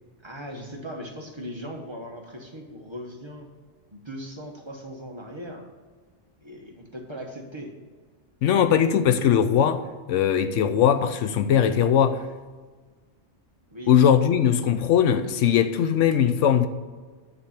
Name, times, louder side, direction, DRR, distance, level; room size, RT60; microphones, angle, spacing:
voice 1, 0.2-3.5 3.9-5.7 6.4-7.7 13.7-14.0, equal, 25° right, 1.2 m, -39 dB
voice 2, 8.4-9.8 10.1-12.2 13.9-16.7, left 8 dB, 85° left, 1.0 m, -20 dB
9.9 x 4.1 x 7.3 m
omnidirectional pair, 1.2 m